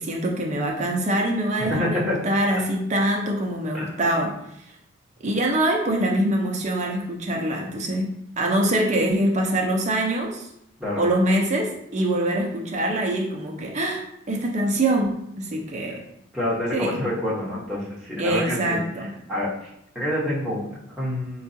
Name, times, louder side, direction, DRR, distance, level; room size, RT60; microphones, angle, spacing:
voice 1, 0.0-4.4 4.6-4.7 5.2-8.1 8.4-10.5 11.0-16.0 16.7-17.0 18.2-19.1, right 1 dB, 35° right, 0 dB, 0.5 m, -24 dB
voice 2, 1.6-2.2 3.7-3.9 10.8-11.0 16.3-18.8 19.3-19.7 19.9-21.4, left 1 dB, ahead, -8 dB, 0.9 m, -27 dB
4.5 x 2.3 x 2.6 m, 0.79 s
head